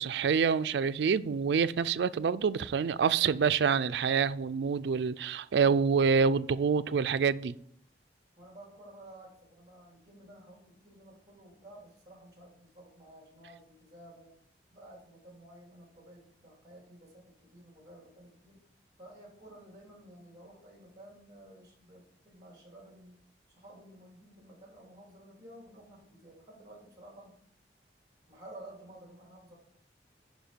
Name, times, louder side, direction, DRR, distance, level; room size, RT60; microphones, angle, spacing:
voice 1, 0.0-7.6, right 6 dB, 75° right, 0.4 m, -27 dB
voice 2, 8.4-14.4 14.7-18.7 19.0-23.2 23.5-27.4 28.3-29.6, right 1 dB, 20° right, 3.0 m, -53 dB
10.5 x 4.7 x 4.5 m
head